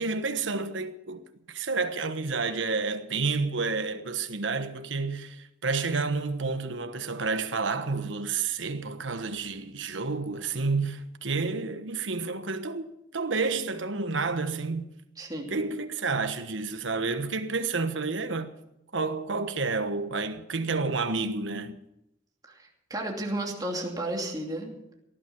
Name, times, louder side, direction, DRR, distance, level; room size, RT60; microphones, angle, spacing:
voice 1, 0.0-12.9 13.1-14.9 15.5-18.5 18.9-21.8, right 4 dB, 75° right, 1.2 m, -30 dB
voice 2, 15.2-15.5 22.5-24.7, right 1 dB, 20° right, 2.8 m, -33 dB
18.5 x 11.5 x 6.1 m
head